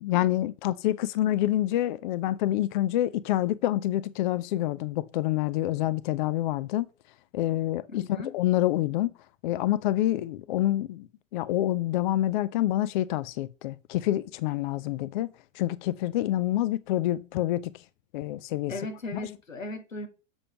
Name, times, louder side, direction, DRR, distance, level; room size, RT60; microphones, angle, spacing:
voice 1, 0.0-6.9 7.3-9.1 9.4-17.8 18.1-18.7, left 14 dB, 40° left, 0.4 m, -27 dB
voice 2, 7.9-8.4 18.7-20.1, left 2 dB, 85° left, 1.7 m, -37 dB
7.2 x 5.0 x 5.6 m
figure-of-eight pair, 100°, 39 cm